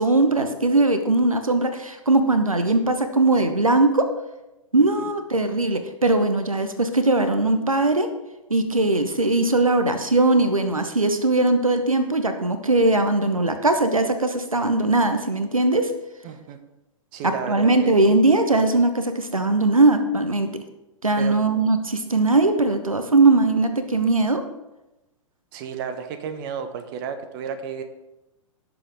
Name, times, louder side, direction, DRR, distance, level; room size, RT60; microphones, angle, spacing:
voice 1, 0.0-4.1 4.7-8.1 8.5-15.9 17.2-20.5 21.0-24.4, right 2 dB, 85° right, 8 dB, 1.0 m, -20 dB
voice 2, 16.2-16.6 17.1-17.9 21.2-21.3 25.5-27.8, right 7 dB, 40° right, 8 dB, 1.3 m, -32 dB
17.0 x 7.3 x 3.5 m, 0.98 s
figure-of-eight pair, 110°, 17 cm